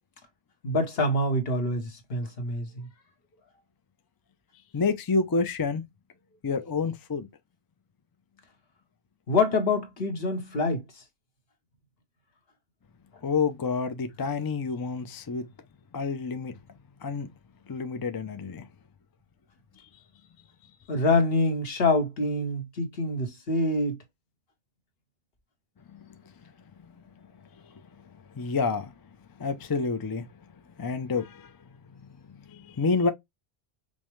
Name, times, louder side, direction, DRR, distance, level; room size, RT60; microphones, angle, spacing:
voice 1, 0.6-2.9 9.3-10.8 20.9-24.0, left 2 dB, 70° left, 1.3 m, -26 dB
voice 2, 4.7-5.8 6.4-7.3 13.2-15.5 15.9-16.5 17.0-17.3 17.7-18.6 25.9-26.0 28.3-28.9 29.4-30.3 30.8-31.5 32.5-33.1, left 4 dB, 35° left, 0.4 m, -28 dB
5.3 x 2.1 x 3.0 m
omnidirectional pair, 1.0 m